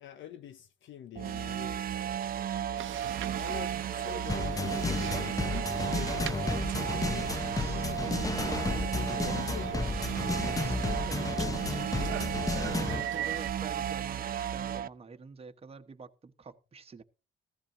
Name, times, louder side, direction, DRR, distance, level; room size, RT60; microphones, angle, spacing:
voice 1, 0.0-1.9 3.4-5.8 6.2-8.0 9.1-10.0 11.2-11.5, left 9 dB, 75° left, 0.8 m, -46 dB
sound 1, 1.2-14.9, right 9 dB, 50° right, 0.5 m, -34 dB
sound 2, 2.8-13.5, right 12 dB, 80° right, 0.8 m, -42 dB
sound 3, 4.3-13.0, left 3 dB, 15° left, 0.7 m, -33 dB
voice 2, 7.5-8.4 8.8-9.1 10.6-17.0, right 4 dB, 30° right, 1.0 m, -48 dB
14.5 x 14.5 x 2.6 m
cardioid pair, 90°, 20 cm